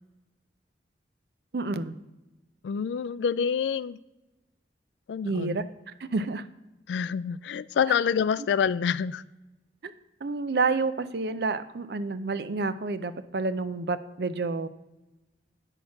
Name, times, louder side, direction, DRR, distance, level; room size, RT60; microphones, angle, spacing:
voice 1, 1.5-2.0 5.2-5.6 6.0-6.4 8.4-8.5 9.8-9.9 10.2-14.7, right 3 dB, 65° right, 13 dB, 0.5 m, -29 dB
voice 2, 2.6-4.0 5.1-5.6 6.9-9.2, left 7 dB, 75° left, 19 dB, 0.3 m, -27 dB
8.9 x 6.3 x 5.8 m, 1.0 s
head